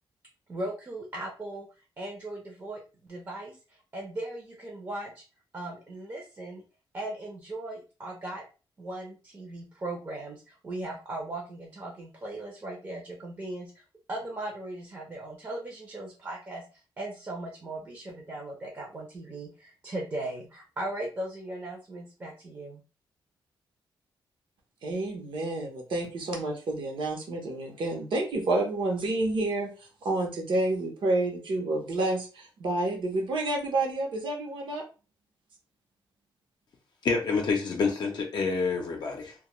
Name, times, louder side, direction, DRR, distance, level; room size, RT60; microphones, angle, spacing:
voice 1, 0.5-1.7 2.0-5.2 5.5-6.6 6.9-8.4 8.8-16.6 17.0-22.8, right 1 dB, 30° right, 0.6 m, -38 dB
voice 2, 24.8-34.8, right 2 dB, 65° right, 0.8 m, -29 dB
voice 3, 37.0-39.3, left 4 dB, 55° left, 0.5 m, -27 dB
2.2 x 2.1 x 3.0 m
wide cardioid pair, 135°, 9 cm